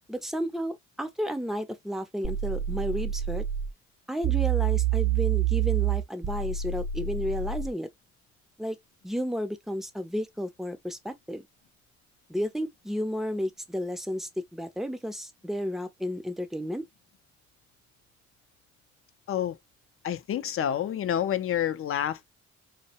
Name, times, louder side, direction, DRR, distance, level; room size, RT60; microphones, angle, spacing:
voice 1, 0.1-3.4 4.1-7.9 8.6-8.8 9.0-11.5 12.3-16.8, equal, ahead, 0.5 m, -32 dB
sound 1, 2.2-3.7 4.2-7.7, right 10 dB, 40° right, 0.7 m, -27 dB
voice 2, 20.0-22.3, left 10 dB, 45° left, 0.5 m, -28 dB
2.3 x 2.1 x 2.8 m
cardioid pair, 90°, 30 cm